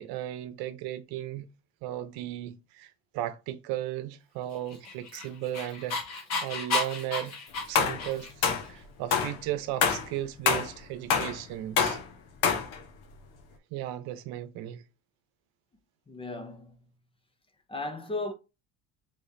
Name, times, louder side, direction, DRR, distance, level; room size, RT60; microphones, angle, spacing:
voice 1, 0.0-1.5 1.8-7.4 7.7-12.0 13.7-14.8, right 13 dB, 80° right, 0.8 m, -36 dB
Dog, 4.7-8.5, left 3 dB, 45° left, 1.3 m, -33 dB
sound 1, 7.8-8.1 8.4-8.7 9.1-9.4 9.8-10.1 10.5-10.7 11.1-11.4 11.8-12.0 12.4-12.8, left 6 dB, 75° left, 1.2 m, -25 dB
voice 2, 16.1-16.8 17.7-18.3, left 2 dB, 15° left, 0.6 m, -35 dB
5.0 x 3.5 x 2.6 m
cardioid pair, 130°, 37 cm